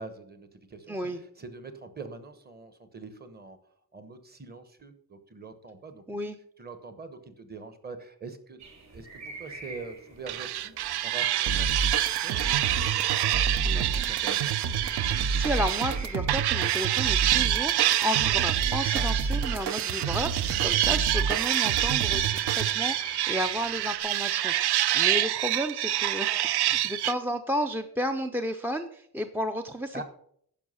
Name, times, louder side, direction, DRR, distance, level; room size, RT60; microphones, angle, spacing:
voice 1, 0.0-3.6 3.9-6.0 6.6-8.6 8.9-11.8 12.0-14.5 18.9-19.1 26.7-26.8 29.9-30.0, right 3 dB, 25° right, 10 dB, 1.0 m, -44 dB
voice 2, 0.9-1.2 6.1-6.4 13.6-13.9 15.0-29.9, equal, 5° right, 7 dB, 0.4 m, -33 dB
sound 1, 8.6-24.0, right 3 dB, 45° right, 3.4 m, -47 dB
sound 2, 10.3-16.0 16.3-27.1, right 13 dB, 90° right, 0.5 m, -27 dB
sound 3, 11.5-22.7, right 5 dB, 60° right, 0.8 m, -30 dB
10.0 x 5.9 x 5.6 m, 0.66 s
wide cardioid pair, 155°, 38 cm